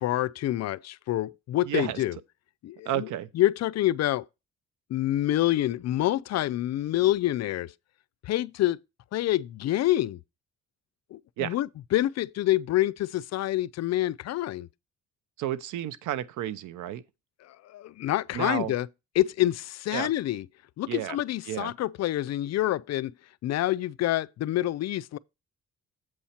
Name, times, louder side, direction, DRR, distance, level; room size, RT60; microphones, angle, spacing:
voice 1, 0.0-2.1 2.6-3.1 3.3-4.3 4.9-7.7 8.2-8.8 9.1-10.2 11.1-14.7 17.4-18.9 19.2-20.4 20.8-23.1 23.4-25.2, left 14 dB, 60° left, 0.4 m, -27 dB
voice 2, 1.7-2.0 2.9-3.3 11.4-11.6 15.4-17.0 18.3-18.7 19.9-20.1 20.9-21.2 21.5-21.7, right 12 dB, 85° right, 0.7 m, -31 dB
7.9 x 4.2 x 5.7 m
cardioid pair, 90°, 30 cm